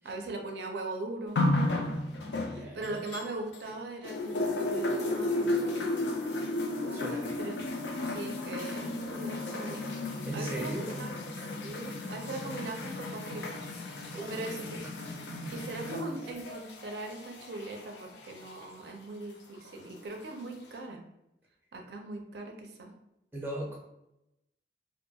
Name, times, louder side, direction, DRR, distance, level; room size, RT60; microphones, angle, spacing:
voice 1, 0.0-1.4 2.5-5.9 6.8-7.1 7.4-7.6 8.0-10.0 10.3-11.1 11.6-13.6 13.9-14.6 15.5-21.0 21.7-22.9, right 2 dB, 70° right, 2 dB, 0.4 m, -40 dB
sound 1, 1.4-3.7 4.0-18.8 19.7-19.8, left 2 dB, 80° left, 0.4 m, -34 dB
voice 2, 2.4-3.0 6.9-7.4 10.2-10.9 14.1-14.7 23.3-23.8, right 1 dB, 10° right, -2 dB, 0.5 m, -38 dB
2.5 x 2.2 x 2.7 m, 0.88 s
head